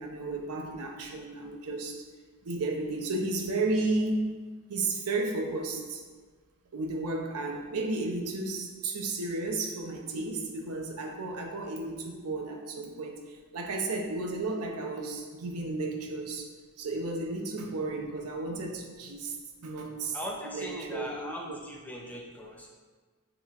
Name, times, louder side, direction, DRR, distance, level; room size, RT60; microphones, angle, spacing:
voice 1, 0.0-2.0 2.4-4.3 4.7-6.0 6.7-16.5 16.8-19.3 19.6-20.2 20.4-21.6, right 2 dB, 80° right, 2 dB, 0.6 m, -33 dB
voice 2, 20.1-22.7, equal, 5° left, -1 dB, 0.4 m, -39 dB
7.1 x 3.0 x 2.4 m, 1.4 s
head